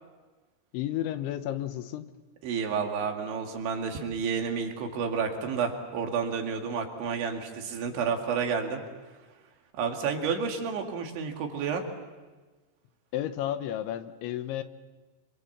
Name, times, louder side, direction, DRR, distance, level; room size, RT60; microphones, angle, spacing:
voice 1, 0.7-2.1 13.1-14.6, left 12 dB, 85° left, 10 dB, 3.4 m, -32 dB
voice 2, 2.4-8.8 9.7-11.8, right 6 dB, 90° right, 2 dB, 4.7 m, -30 dB
26.5 x 24.5 x 7.3 m, 1.3 s
omnidirectional pair, 5.1 m